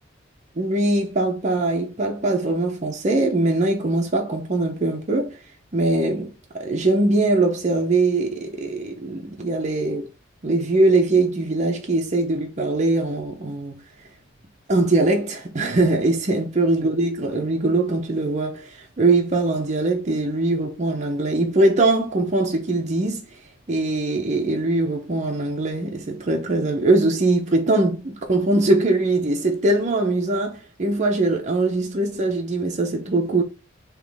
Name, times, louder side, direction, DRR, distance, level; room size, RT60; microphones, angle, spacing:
voice 1, 0.6-5.4 5.7-10.1 10.4-13.8 14.7-23.2 23.7-33.4, right 2 dB, 35° right, 0.6 m, -21 dB
3.9 x 2.9 x 3.4 m
head